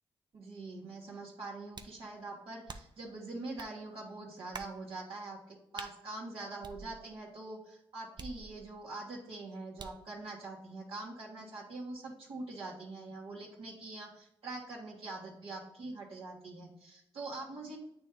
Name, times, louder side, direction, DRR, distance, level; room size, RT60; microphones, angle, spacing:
voice 1, 0.3-17.8, right 2 dB, 70° right, -6 dB, 1.6 m, -44 dB
sound 1, 1.8-2.0 2.7-3.1 3.6-3.7 4.5-4.8 5.8-6.0 6.6-7.3 8.2-8.9 9.8-10.1, right 4 dB, 45° right, 0.6 m, -47 dB
8.6 x 3.0 x 3.8 m, 0.81 s
supercardioid pair, 50°, 10 cm